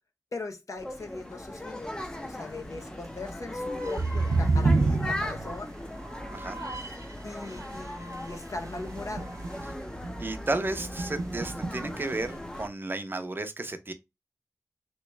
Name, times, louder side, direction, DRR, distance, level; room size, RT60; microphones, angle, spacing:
voice 1, 0.3-1.9 2.2-5.7 7.2-9.3, left 3 dB, 70° left, 0.8 m, -40 dB
sound 1, 0.8-12.7, left 1 dB, 15° left, 0.6 m, -38 dB
sound 2, 3.7-7.1 7.4-9.7 10.0-10.2 10.6-12.3, right 3 dB, 80° right, 0.5 m, -29 dB
voice 2, 10.2-13.9, right 2 dB, 40° right, 0.6 m, -33 dB
3.1 x 3.0 x 3.2 m
wide cardioid pair, 80°, 6 cm